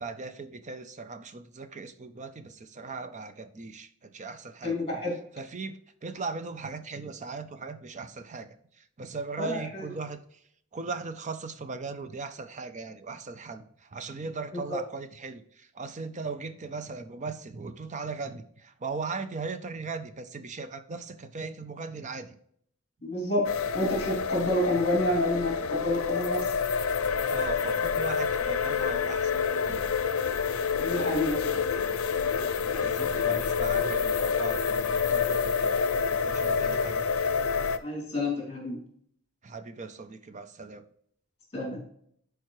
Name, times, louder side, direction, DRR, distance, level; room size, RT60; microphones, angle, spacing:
voice 1, 0.0-4.8 5.4-10.4 10.7-22.4 27.3-29.9 32.6-35.8 36.2-37.1 39.4-40.8, right 4 dB, 35° right, 11 dB, 0.5 m, -38 dB
voice 2, 4.6-5.2 9.4-9.9 14.5-14.8 23.0-26.5 30.8-31.6 37.8-38.8 41.5-41.8, left 1 dB, 30° left, -2 dB, 3.3 m, -29 dB
sound 1, 23.4-37.8, left 6 dB, 80° left, 0.5 m, -28 dB
11.0 x 4.8 x 3.1 m, 0.66 s
head